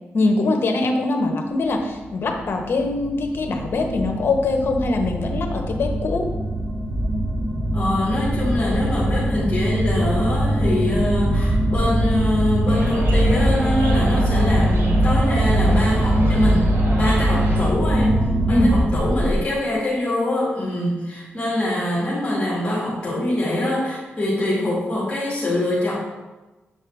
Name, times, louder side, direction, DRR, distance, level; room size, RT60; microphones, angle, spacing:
voice 1, 0.1-6.3 18.5-18.7, left 2 dB, 60° left, 4 dB, 1.1 m, -22 dB
sound 1, 1.9-19.4, right 1 dB, 20° right, 0.8 m, -21 dB
voice 2, 7.7-16.7 17.0-18.2 18.4-25.9, left 1 dB, 25° left, -8 dB, 2.3 m, -24 dB
sound 2, 12.7-17.7, right 1 dB, 65° right, 1.4 m, -32 dB
7.9 x 4.5 x 3.5 m, 1.1 s
cardioid pair, 80°, 4 cm